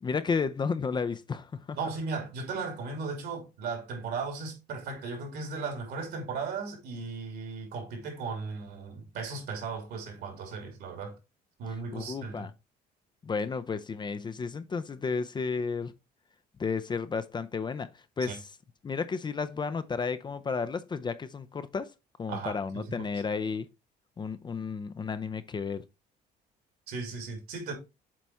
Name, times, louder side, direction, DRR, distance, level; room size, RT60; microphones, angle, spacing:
voice 1, 0.0-1.8 11.9-12.5 13.2-15.9 16.6-17.9 18.2-18.5 18.8-21.9 22.2-23.7 24.2-25.8, left 5 dB, 25° left, 0.5 m, -32 dB
voice 2, 1.8-11.1 11.6-12.5 18.2-18.4 22.3-23.1 26.9-27.7, right 4 dB, 75° right, 2.8 m, -36 dB
7.5 x 4.1 x 3.4 m
cardioid pair, 110°, 17 cm